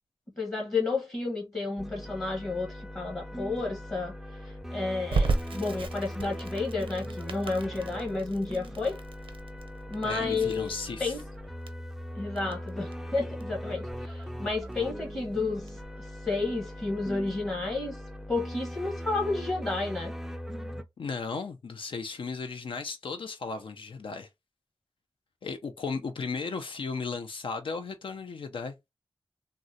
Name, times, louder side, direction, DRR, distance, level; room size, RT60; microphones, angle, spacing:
voice 1, 0.4-4.1 4.4-9.0 9.9-10.7 11.0-11.2 12.2-15.8 16.3-18.0 18.3-20.1, left 3 dB, 30° left, 0.9 m, -31 dB
sound 1, 1.8-20.8, equal, 5° right, 0.4 m, -40 dB
Crackle, 5.1-15.8, right 3 dB, 80° right, 0.6 m, -36 dB
voice 2, 10.0-11.2 21.0-24.3 25.4-28.8, left 4 dB, 75° left, 0.4 m, -35 dB
3.6 x 2.1 x 2.6 m
wide cardioid pair, 90°, 9 cm